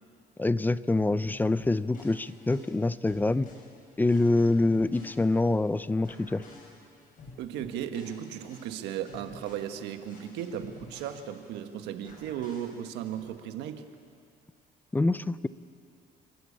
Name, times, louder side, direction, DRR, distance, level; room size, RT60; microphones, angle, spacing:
voice 1, 0.4-3.5 4.0-6.4 14.9-15.5, left 2 dB, 10° left, 16 dB, 0.5 m, -25 dB
sound 1, 1.2-5.7 6.0-11.7 12.0-13.2, left 2 dB, 55° left, 6.8 m, -51 dB
voice 2, 7.4-13.8, right 9 dB, 90° right, 7 dB, 1.4 m, -36 dB
29.5 x 12.5 x 8.6 m, 2.4 s
cardioid pair, 110°, 17 cm